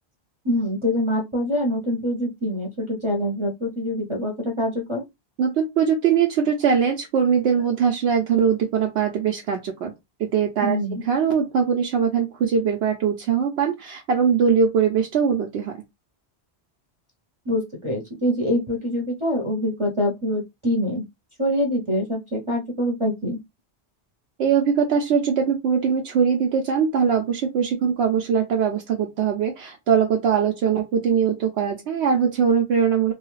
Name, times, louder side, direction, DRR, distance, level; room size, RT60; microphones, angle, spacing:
voice 1, 0.4-5.0 10.6-11.0 17.5-21.0 21.4-23.4, left 1 dB, 30° right, 0.7 m, -25 dB
voice 2, 5.4-9.9 10.2-10.8 11.0-15.8 24.4-33.1, right 7 dB, 80° right, 0.9 m, -21 dB
2.7 x 2.3 x 3.1 m
omnidirectional pair, 1.1 m